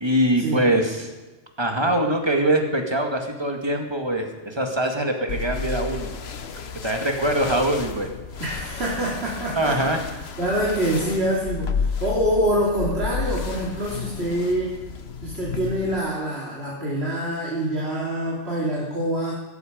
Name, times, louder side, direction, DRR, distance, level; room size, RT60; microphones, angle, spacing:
voice 1, 0.0-1.1 1.6-6.1 6.8-8.1 9.6-10.0, right 1 dB, 20° right, 4 dB, 2.1 m, -23 dB
sound 1, 5.3-16.0, left 5 dB, 60° left, 1.2 m, -32 dB
voice 2, 8.4-9.8 10.4-14.8 15.2-19.3, right 1 dB, 60° right, -4 dB, 3.3 m, -25 dB
16.5 x 14.5 x 5.2 m, 1.2 s
omnidirectional pair, 1.2 m